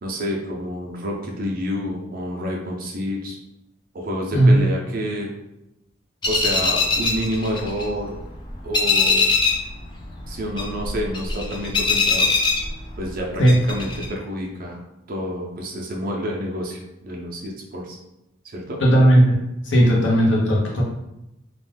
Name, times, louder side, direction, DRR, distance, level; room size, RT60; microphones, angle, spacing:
voice 1, 0.0-3.4 3.9-5.3 6.3-8.1 8.6-9.3 10.3-12.3 13.0-14.8 15.1-18.0 18.4-18.8, equal, 45° right, 0 dB, 0.5 m, -28 dB
sound 1, 6.2-8.2 8.5-9.7 10.0-13.2 13.5-14.1, left 4 dB, 25° left, 0.3 m, -21 dB
voice 2, 18.8-19.4 19.6-20.8, right 1 dB, 60° left, -3 dB, 0.7 m, -15 dB
2.4 x 2.2 x 3.2 m, 0.89 s
head